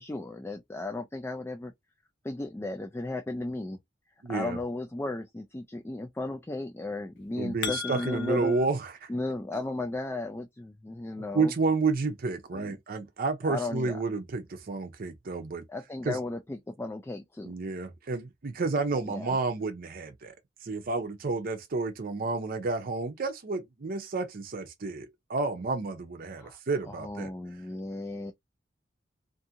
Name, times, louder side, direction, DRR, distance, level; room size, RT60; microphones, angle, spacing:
voice 1, 0.0-1.7 2.2-3.8 4.3-8.6 9.1-11.5 12.5-12.8 13.4-14.0 15.7-17.5 19.1-19.4 26.4-26.6 26.9-28.3, left 2 dB, 10° left, 0.3 m, -35 dB
voice 2, 4.2-4.6 7.4-9.1 11.3-15.6 16.0-16.2 17.4-20.4 20.6-27.3, right 3 dB, 50° right, 0.6 m, -30 dB
sound 1, 7.2-8.7, left 7 dB, 65° left, 0.5 m, -36 dB
2.6 x 2.5 x 2.7 m
head